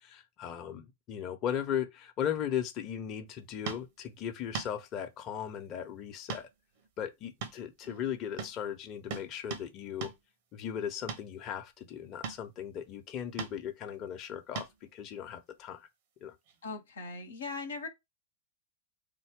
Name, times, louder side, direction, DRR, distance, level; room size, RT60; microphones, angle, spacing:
voice 1, 0.0-6.5 7.0-10.1 10.5-15.9 16.2-16.3, left 9 dB, 35° left, 1.0 m, -37 dB
sound 1, 3.7-3.9 4.5-4.7 6.3-6.5 6.8-6.9 7.4-8.1 8.4-8.6 9.1-9.7 10.0-10.2 11.1-11.3 12.2-12.5 13.4-13.6 14.5-14.8 16.5-16.6, right 6 dB, 50° right, 1.1 m, -39 dB
voice 2, 16.6-17.9, left 3 dB, 70° left, 1.0 m, -39 dB
3.8 x 2.3 x 3.7 m
figure-of-eight pair, 90°, 0 cm